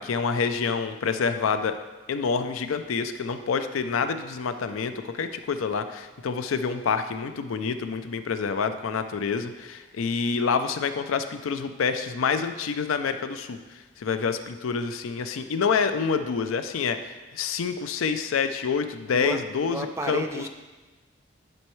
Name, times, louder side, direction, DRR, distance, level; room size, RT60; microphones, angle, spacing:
voice 1, 0.0-1.8 2.1-20.4, left 5 dB, 90° left, 9 dB, 0.4 m, -27 dB
voice 2, 19.1-20.5, right 1 dB, 15° right, 5 dB, 0.4 m, -32 dB
10.5 x 4.4 x 3.1 m, 1.2 s
head